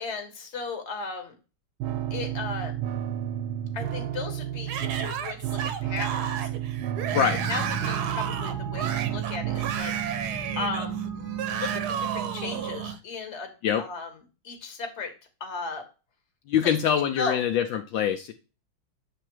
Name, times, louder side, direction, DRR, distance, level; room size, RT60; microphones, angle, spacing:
voice 1, 0.0-1.3 2.1-2.7 3.7-6.5 7.5-10.0 10.5-11.0 11.5-13.5 13.8-14.2 14.4-15.1 15.4-15.8 16.6-16.8 17.1-17.4, left 4 dB, 35° left, 5 dB, 1.6 m, -35 dB
sound 1, 1.8-9.8, right 11 dB, 80° right, 1.4 m, -32 dB
Yell / Screaming, 4.7-13.0, right 8 dB, 65° right, 1.1 m, -33 dB
sound 2, 7.1-12.9, right 6 dB, 5° left, 1.4 m, -35 dB
voice 2, 16.5-18.3, left 8 dB, 75° left, 5 dB, 1.3 m, -24 dB
7.9 x 3.4 x 4.5 m, 0.32 s
omnidirectional pair, 2.2 m